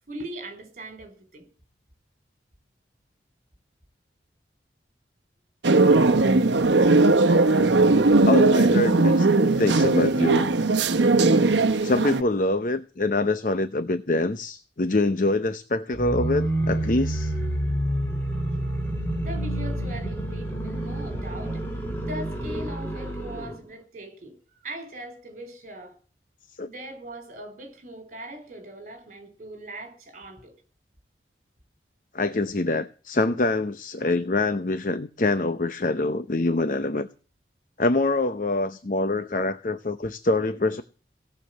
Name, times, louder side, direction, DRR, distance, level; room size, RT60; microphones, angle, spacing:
voice 1, 0.1-1.4 19.2-21.7 21.9-24.3 24.6-25.9 26.6-30.5, right 1 dB, 40° right, 4.6 m, -40 dB
sound 1, 5.6-12.2, right 3 dB, 85° right, 1.0 m, -19 dB
voice 2, 8.2-9.3 9.6-10.5 11.8-17.3 26.6-26.7 32.1-37.1 37.8-40.8, left 2 dB, 45° left, 0.7 m, -25 dB
sound 2, 15.9-23.6, right 1 dB, 10° left, 3.4 m, -28 dB
17.5 x 6.9 x 8.0 m
head